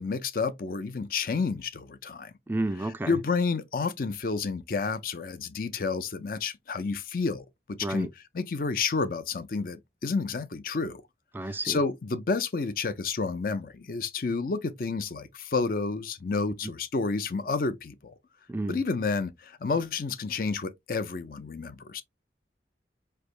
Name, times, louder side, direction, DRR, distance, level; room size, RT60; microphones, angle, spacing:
voice 1, 0.0-2.3 3.1-8.1 8.3-11.0 11.4-18.1 18.7-22.0, left 4 dB, 50° left, 0.5 m, -30 dB
voice 2, 2.5-3.1 7.8-8.1 11.3-11.8 18.5-18.8, right 2 dB, 10° right, 0.3 m, -31 dB
4.9 x 3.3 x 2.5 m
head